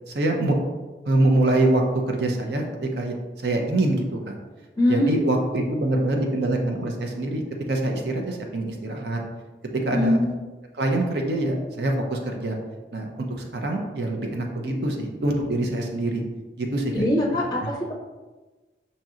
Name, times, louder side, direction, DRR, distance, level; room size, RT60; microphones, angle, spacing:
voice 1, 0.1-0.6 1.1-3.1 3.4-4.3 4.9-7.4 7.7-9.2 9.7-10.2 10.8-12.6 12.9-13.1 13.4-16.2 16.6-17.1, right 2 dB, 70° right, 2 dB, 0.6 m, -24 dB
voice 2, 4.8-5.2 9.9-10.3 16.9-17.9, left 1 dB, 20° left, -2 dB, 0.5 m, -22 dB
5.2 x 2.8 x 2.4 m, 1.2 s
head